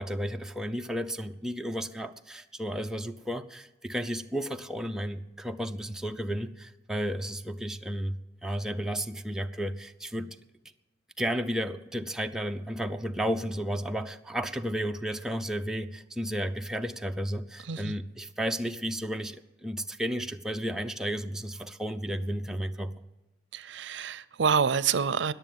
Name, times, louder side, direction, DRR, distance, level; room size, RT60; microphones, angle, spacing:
voice 1, 0.0-10.3 11.2-22.9, equal, 5° right, 0.5 m, -33 dB
voice 2, 17.6-18.0 23.5-25.3, right 6 dB, 75° right, 0.5 m, -27 dB
20.0 x 7.0 x 9.1 m
head